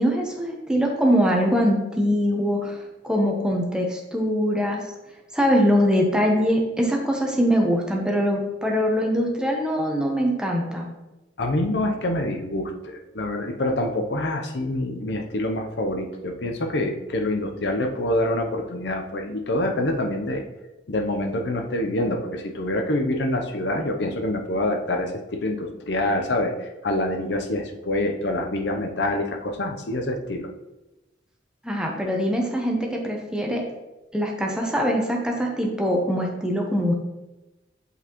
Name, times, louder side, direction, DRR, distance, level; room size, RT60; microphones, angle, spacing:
voice 1, 0.0-2.8 3.0-4.8 5.3-10.9 31.6-33.6 34.1-36.9, equal, 5° right, 0 dB, 0.8 m, -22 dB
voice 2, 11.4-20.4 20.9-30.5, left 1 dB, 65° left, 4 dB, 0.7 m, -26 dB
8.2 x 4.1 x 3.0 m, 1.0 s
head